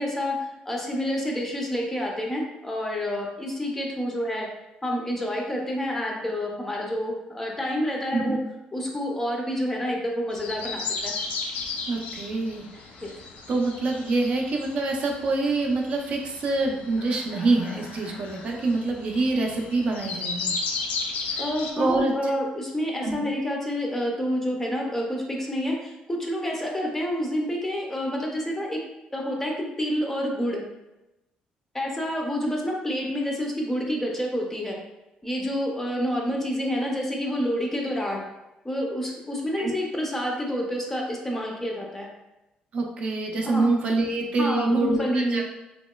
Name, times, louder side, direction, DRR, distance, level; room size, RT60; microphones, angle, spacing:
voice 1, 0.0-4.5 4.8-8.4 8.7-11.1 13.0-13.1 21.4-28.8 29.1-30.6 31.7-34.8 35.2-38.3 38.6-42.1 43.4-43.7 44.4-45.4, equal, 15° left, -1 dB, 0.4 m, -28 dB
sound 1, 10.3-21.7, left 4 dB, 75° left, 0.4 m, -35 dB
voice 2, 11.9-12.7 13.5-20.5 21.3-21.4 21.8-22.3 23.0-23.1 39.6-39.7 42.7-45.4, right 3 dB, 50° right, 1 dB, 0.4 m, -26 dB
2.9 x 2.8 x 2.2 m, 0.97 s
cardioid pair, 135°, 3 cm